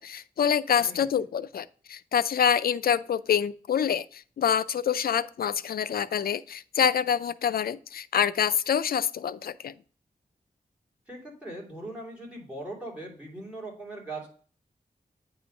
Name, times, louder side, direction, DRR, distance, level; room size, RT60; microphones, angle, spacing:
voice 1, 0.0-9.7, left 8 dB, 75° left, 14 dB, 0.4 m, -26 dB
voice 2, 11.1-14.3, right 2 dB, 10° right, -2 dB, 2.9 m, -40 dB
8.9 x 3.1 x 5.1 m, 0.43 s
wide cardioid pair, 110°, 16 cm